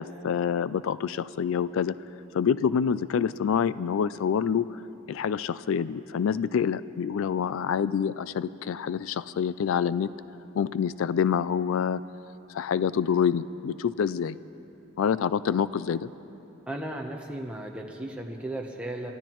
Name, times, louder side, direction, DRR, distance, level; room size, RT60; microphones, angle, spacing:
voice 1, 0.0-1.9 2.3-4.8 5.1-10.1 10.5-12.0 12.5-14.4 15.0-16.1, left 7 dB, 70° left, 17 dB, 0.3 m, -27 dB
voice 2, 16.7-19.1, right 1 dB, 5° right, 0 dB, 0.8 m, -35 dB
29.0 x 14.0 x 3.0 m, 3.0 s
head